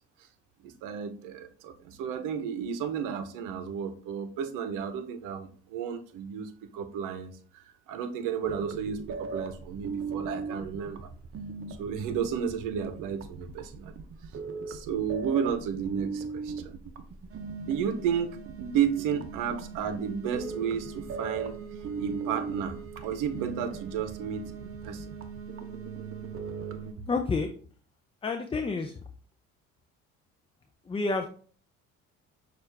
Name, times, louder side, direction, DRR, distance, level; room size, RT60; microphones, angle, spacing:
voice 1, 0.6-11.1 11.7-13.9 14.6-16.7 17.7-21.6 22.0-25.0, right 7 dB, 80° right, 10 dB, 0.7 m, -32 dB
sound 1, 8.4-26.9, right 5 dB, 45° right, 0.7 m, -38 dB
voice 2, 27.1-27.5 28.2-28.9 30.9-31.3, left 3 dB, 20° left, 5 dB, 0.4 m, -29 dB
6.2 x 2.5 x 3.3 m, 0.43 s
supercardioid pair, 75°, 32 cm